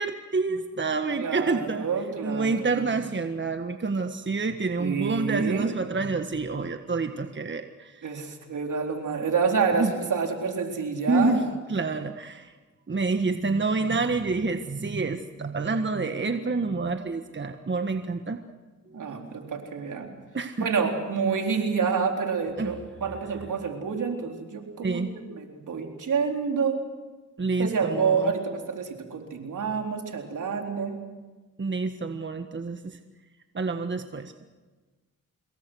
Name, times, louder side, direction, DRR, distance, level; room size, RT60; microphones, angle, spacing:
voice 1, 0.0-1.9 2.2-7.9 9.7-9.9 11.1-11.4 11.7-12.5 12.9-18.4 20.3-20.7 22.6-22.7 24.8-25.1 27.4-28.3 31.6-33.0 33.5-34.3, right 3 dB, 35° right, 7 dB, 1.5 m, -28 dB
voice 2, 1.2-3.1 4.8-5.7 8.0-11.4 18.9-20.1 20.6-26.8 27.6-31.0, right 5 dB, 75° right, 3 dB, 4.1 m, -28 dB
26.5 x 21.5 x 6.4 m, 1.3 s
cardioid pair, 65°, 31 cm